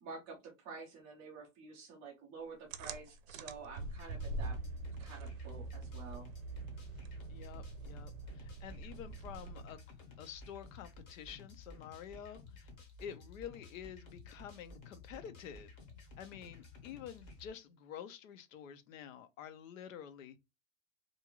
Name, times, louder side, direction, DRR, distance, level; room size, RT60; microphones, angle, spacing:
voice 1, 0.0-4.6 5.0-6.3, right 4 dB, 15° right, 0.3 m, -49 dB
sound 1, 2.7-9.9, right 3 dB, 80° right, 0.6 m, -44 dB
sound 2, 3.8-17.5, left 3 dB, 30° left, 0.7 m, -54 dB
voice 2, 7.3-9.8 10.2-12.7 13.0-15.7 16.2-20.4, left 9 dB, 80° left, 0.7 m, -49 dB
2.6 x 2.3 x 2.9 m
supercardioid pair, 160°, 39 cm